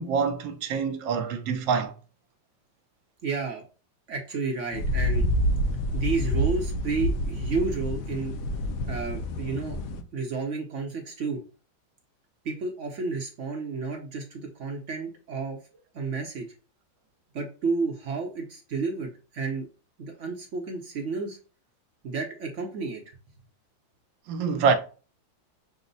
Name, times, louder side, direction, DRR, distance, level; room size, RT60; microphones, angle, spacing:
voice 1, 0.0-1.9 24.3-24.7, right 5 dB, 80° right, 1.3 m, -25 dB
voice 2, 3.2-3.6 4.1-5.2 5.9-8.4 8.9-9.8 10.1-11.4 12.4-15.6 15.9-16.5 17.3-19.7 20.0-21.4 22.0-23.0, right 4 dB, 55° right, 0.9 m, -31 dB
sound 1, 4.7-10.0, equal, 70° left, 1.1 m, -27 dB
6.2 x 2.1 x 3.9 m
omnidirectional pair, 2.0 m